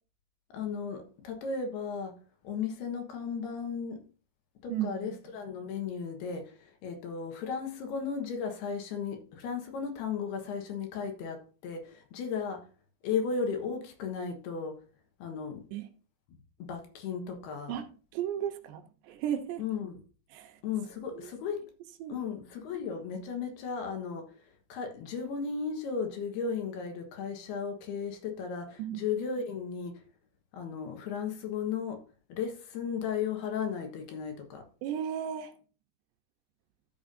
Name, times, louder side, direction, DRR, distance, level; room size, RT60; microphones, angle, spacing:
voice 1, 0.5-2.2 2.4-4.0 4.6-12.7 13.0-14.8 15.2-15.6 16.3-17.8 19.6-20.0 20.6-21.6 22.1-30.0 30.5-32.0 32.3-34.7, left 6 dB, 70° left, 3.1 m, -35 dB
voice 2, 4.7-5.4 15.7-15.9 17.7-19.6 20.3-20.6 21.1-21.3 22.0-22.2 28.8-29.0 34.8-35.6, right 10 dB, 80° right, 3.0 m, -35 dB
12.5 x 7.0 x 2.6 m
omnidirectional pair, 5.1 m